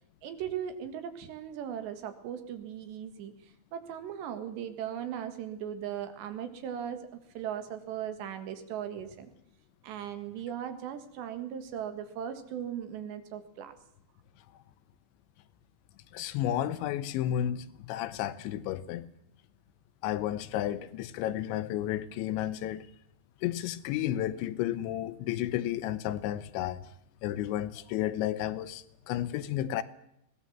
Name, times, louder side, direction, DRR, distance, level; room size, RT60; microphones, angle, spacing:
voice 1, 0.2-3.3 3.7-9.3 9.8-13.7, right 9 dB, 75° right, 3.9 m, -38 dB
voice 2, 16.1-19.1 20.0-22.9 23.4-26.8 27.2-29.8, left 12 dB, 90° left, 3.3 m, -32 dB
23.0 x 17.5 x 7.3 m
omnidirectional pair, 5.1 m